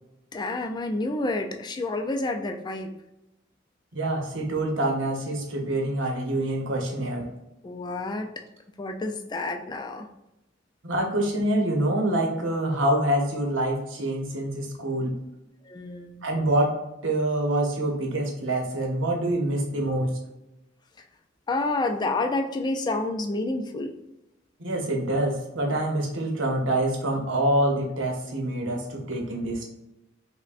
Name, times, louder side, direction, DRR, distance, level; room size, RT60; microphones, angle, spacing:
voice 1, 0.3-3.0 7.6-8.3 8.8-10.1 15.6-16.2 21.5-23.9, left 2 dB, 20° left, 4 dB, 0.3 m, -29 dB
voice 2, 3.9-7.3 10.8-15.1 16.2-16.8 17.0-20.1 24.6-29.7, right 1 dB, 90° right, 1 dB, 0.9 m, -26 dB
5.6 x 2.2 x 2.5 m, 0.92 s
head